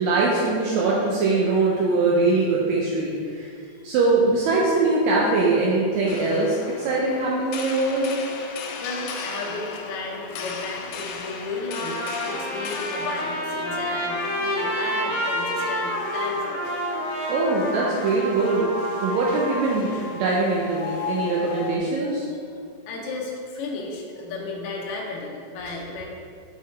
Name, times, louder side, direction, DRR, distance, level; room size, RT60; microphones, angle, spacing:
voice 1, 0.0-3.5 3.8-8.1 17.3-18.7 19.0-22.3, right 3 dB, 75° right, -4 dB, 1.9 m, -22 dB
sound 1, 6.1-21.8, left 3 dB, 90° left, 2.1 m, -35 dB
voice 2, 8.8-16.7 22.4-22.6 22.9-26.1, left 3 dB, 70° left, -2 dB, 1.4 m, -34 dB
Trumpet, 11.7-19.7, equal, 50° left, 1.5 m, -29 dB
5.6 x 5.3 x 3.2 m, 2.2 s
omnidirectional pair, 3.5 m